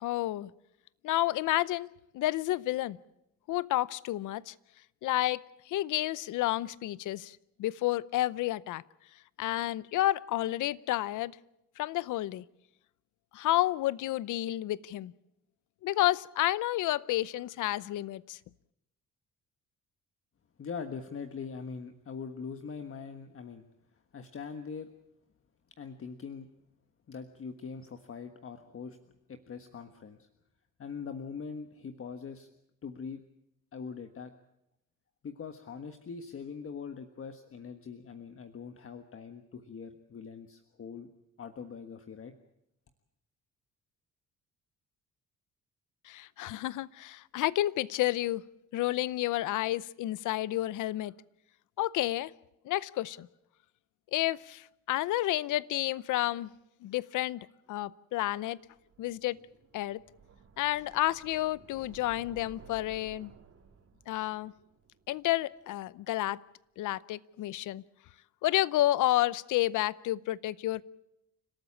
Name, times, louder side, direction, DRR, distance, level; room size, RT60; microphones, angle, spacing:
voice 1, 0.0-0.5 1.0-3.0 3.5-4.5 5.0-8.8 9.4-11.4 11.8-12.4 13.3-15.1 15.8-18.4 46.0-48.4 48.7-51.1 51.8-52.3 52.6-53.3 54.1-56.5 56.8-58.6 59.0-59.4 59.7-60.0 60.6-63.3 64.1-64.5 65.1-66.4 66.8-67.8 68.4-70.8, left 15 dB, 80° left, 20 dB, 0.7 m, -30 dB
voice 2, 20.6-23.6 24.1-24.9 25.8-26.5 27.1-29.0 29.3-30.3 30.8-32.5 32.8-33.2 33.7-34.3 35.2-41.1 41.4-42.3, left 5 dB, 45° left, 7 dB, 1.5 m, -42 dB
sound 1, 58.7-65.7, right 6 dB, 55° right, 3.7 m, -56 dB
29.5 x 13.0 x 8.6 m, 0.85 s
cardioid pair, 90°, 30 cm